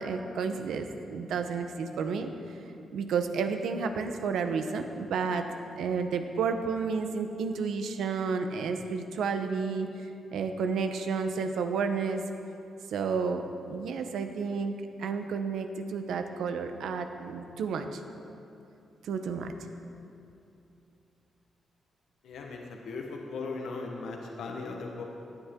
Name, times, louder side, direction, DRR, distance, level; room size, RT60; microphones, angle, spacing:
voice 1, 0.0-2.3 2.9-5.5 5.7-9.9 10.3-12.2 12.9-18.0 19.0-19.5, right 5 dB, 85° right, 7 dB, 0.8 m, -31 dB
voice 2, 22.2-25.0, left 3 dB, 80° left, 1 dB, 1.2 m, -38 dB
15.5 x 10.0 x 3.7 m, 2.7 s
cardioid pair, 130°, 0 cm